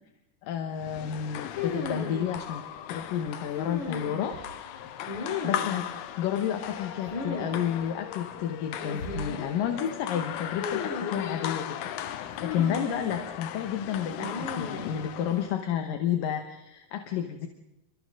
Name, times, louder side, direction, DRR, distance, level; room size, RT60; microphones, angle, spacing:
voice 1, 0.5-2.6 2.9-4.4 5.4-5.9 6.2-17.5, left 9 dB, 65° left, 6 dB, 2.7 m, -31 dB
sound 1, 0.8-15.6, left 11 dB, 80° left, 3.0 m, -37 dB
sound 2, 1.6-2.3 3.6-4.4 5.1-5.8 7.1-7.5 7.8-7.9 8.8-9.5 10.6-11.4 12.4-13.2 14.2-14.9, left 4 dB, 50° left, 4.9 m, -34 dB
29.0 x 24.5 x 3.9 m, 0.89 s
omnidirectional pair, 4.6 m